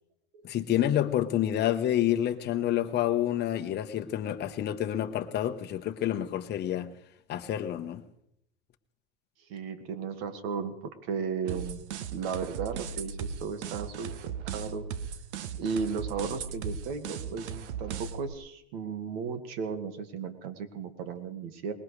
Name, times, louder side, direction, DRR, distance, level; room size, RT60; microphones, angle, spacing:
voice 1, 0.4-6.9 7.3-8.0, left 11 dB, 30° left, 7 dB, 1.1 m, -28 dB
voice 2, 9.5-10.7 11.0-11.8 12.1-14.8 15.6-21.7, right 5 dB, 65° right, 8 dB, 2.0 m, -35 dB
sound 1, 11.5-18.3, right 7 dB, 85° right, 1.0 m, -37 dB
20.5 x 19.5 x 3.3 m, 0.80 s
supercardioid pair, 135°, 33 cm